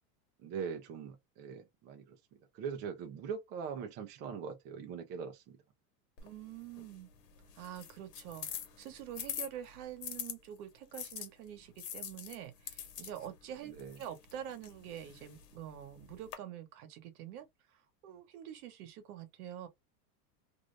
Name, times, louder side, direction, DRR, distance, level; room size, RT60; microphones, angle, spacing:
voice 1, 0.4-5.6 13.6-14.0, right 6 dB, 25° right, 0.3 m, -42 dB
sound 1, 6.2-10.3 10.9-16.3, left 9 dB, 85° left, 1.1 m, -46 dB
voice 2, 6.2-7.1 7.5-8.5 8.8-19.7, right 10 dB, 70° right, 1.0 m, -46 dB
2.5 x 2.3 x 3.0 m
supercardioid pair, 145°, 47 cm